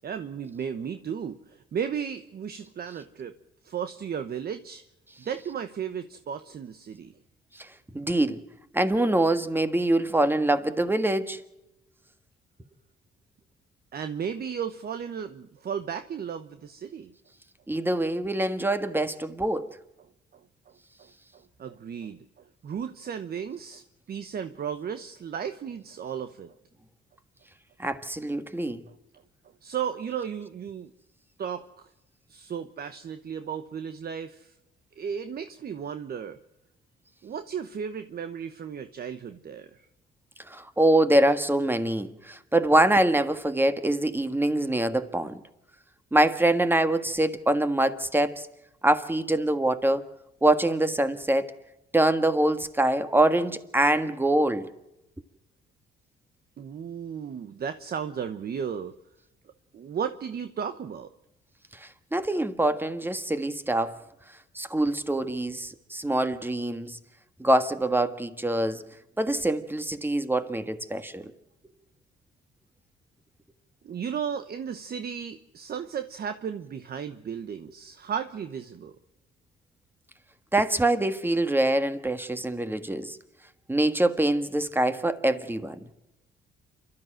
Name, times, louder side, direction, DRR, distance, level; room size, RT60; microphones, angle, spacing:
voice 1, 0.0-3.4 3.6-4.8 5.2-7.1 13.9-17.1 21.6-22.2 22.6-23.8 24.1-26.5 29.6-30.9 31.4-31.6 32.3-34.5 35.0-36.4 37.2-39.9 56.6-59.0 59.7-61.1 73.8-78.9, right 7 dB, 50° right, 1.1 m, -34 dB
voice 2, 7.9-8.4 8.7-11.4 17.7-19.7 27.8-28.8 40.5-45.4 46.1-48.5 48.8-50.0 50.4-51.5 51.9-54.7 61.7-64.0 64.5-67.0 67.4-68.8 69.2-71.3 80.5-83.2 83.7-85.8, right 1 dB, 10° right, 1.6 m, -24 dB
28.5 x 13.0 x 7.7 m
cardioid pair, 90°, 20 cm